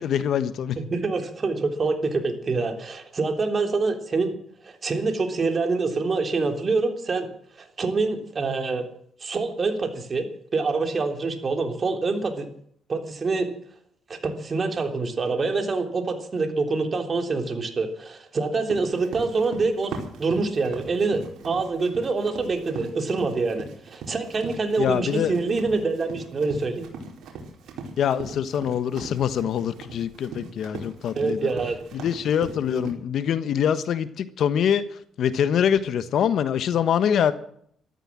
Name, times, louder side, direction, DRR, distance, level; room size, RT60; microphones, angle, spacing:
voice 1, 0.0-0.8 24.8-25.3 28.0-31.4 31.9-34.8 35.2-37.3, left 8 dB, 70° left, 1.3 m, -24 dB
voice 2, 0.8-4.4 4.6-7.3 7.6-8.8 9.2-10.3 10.5-12.5 12.9-13.5 14.1-19.9 20.2-26.9 31.1-31.8, right 3 dB, 40° right, 3.6 m, -26 dB
Run, 18.7-32.9, right 3 dB, 75° right, 4.8 m, -40 dB
14.0 x 13.5 x 7.6 m
cardioid pair, 90°, 0 cm